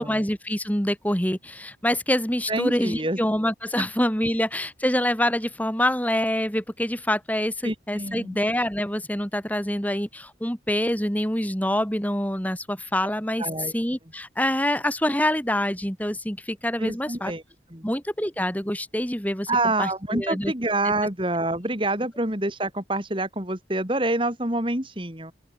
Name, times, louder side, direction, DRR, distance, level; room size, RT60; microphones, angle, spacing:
voice 1, 0.0-13.5 13.7-17.3 17.8-19.5 19.8-20.5 20.8-20.9, left 1 dB, 10° left, 4.4 m, -26 dB
voice 2, 2.5-3.2 7.6-8.4 13.4-13.7 16.8-17.4 17.7-17.9 19.5-25.3, right 2 dB, 30° right, 4.1 m, -27 dB
open air
head